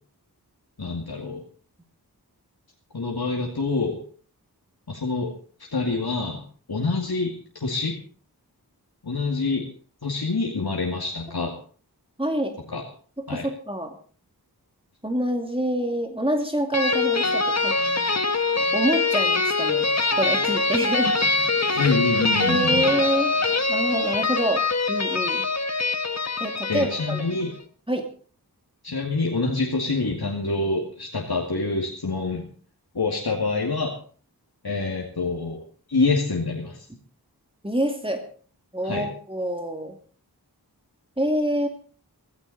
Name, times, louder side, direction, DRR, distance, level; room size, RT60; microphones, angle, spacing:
voice 1, 0.8-1.4 2.9-4.0 4.9-5.3 5.7-8.0 9.0-9.7 10.0-11.5 12.7-12.8 13.3-13.5 21.8-22.9 26.7-27.5 28.8-32.4 32.9-33.9 34.6-35.6 35.9-36.9 38.8-39.1, left 3 dB, 70° left, -1 dB, 2.4 m, -26 dB
voice 2, 12.2-12.6 13.2-14.0 15.0-17.8 18.7-19.9 20.2-21.1 21.6-22.0 22.4-23.3 23.7-25.5 26.4-27.2 27.9-28.1 37.6-38.2 38.7-40.0 41.2-41.7, right 1 dB, 15° right, 4 dB, 2.5 m, -26 dB
sound 1, 16.7-27.5, left 3 dB, 40° left, 1.4 m, -23 dB
16.0 x 15.5 x 4.2 m, 0.43 s
wide cardioid pair, 40°, 39 cm